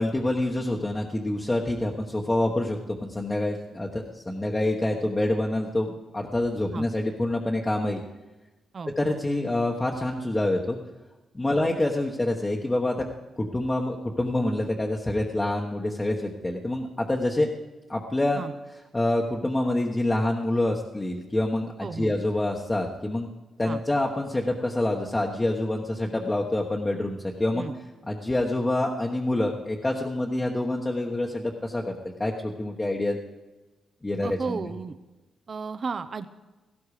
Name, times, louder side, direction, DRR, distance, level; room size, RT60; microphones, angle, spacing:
voice 1, 0.0-8.0 9.0-10.8 11.3-13.1 13.4-17.5 17.9-18.4 18.9-23.3 23.6-33.2 34.0-34.7, left 1 dB, 15° left, -1 dB, 1.2 m, -27 dB
voice 2, 21.8-22.1 23.6-23.8 27.5-27.7 34.2-35.0 35.5-36.3, right 5 dB, 35° right, 11 dB, 0.8 m, -33 dB
18.0 x 16.0 x 4.9 m, 1.1 s
wide cardioid pair, 145°, 0 cm